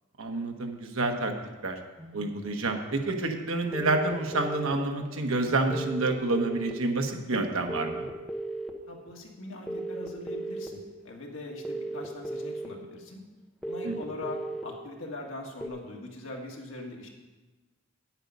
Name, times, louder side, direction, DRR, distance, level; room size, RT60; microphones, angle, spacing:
voice 1, 0.2-1.3 1.6-1.8 2.1-8.1 13.8-13.9, right 2 dB, 85° right, 4 dB, 1.2 m, -28 dB
sound 1, 2.0-2.2 3.7-4.0 5.4-5.7 7.1-7.4, right 3 dB, 30° right, 2.6 m, -47 dB
sound 2, 3.7-4.7 5.7-6.7 7.7-8.7 9.7-10.7 11.7-12.7 13.6-14.6 15.6-15.7, right 2 dB, ahead, 0.8 m, -35 dB
voice 2, 8.9-13.2 13.7-17.1, left 2 dB, 75° left, 0 dB, 1.9 m, -41 dB
9.3 x 8.9 x 5.4 m, 1.2 s
head